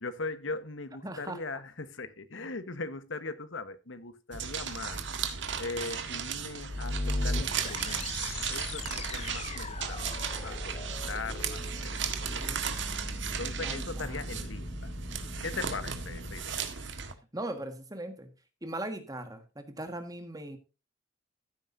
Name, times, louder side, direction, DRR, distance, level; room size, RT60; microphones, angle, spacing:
voice 1, 0.0-5.0 5.6-12.0 12.3-12.5 13.4-14.9 15.4-16.6, left 3 dB, 85° left, 1.2 m, -40 dB
voice 2, 1.0-1.4 10.1-10.2 12.4-12.7 13.6-14.4 17.3-18.3 18.6-20.6, right 1 dB, 20° right, 1.6 m, -39 dB
sound 1, 4.3-17.1, right 6 dB, 70° right, 1.6 m, -35 dB
sound 2, 6.4-16.4, left 2 dB, 35° left, 0.7 m, -39 dB
15.0 x 8.8 x 2.7 m
head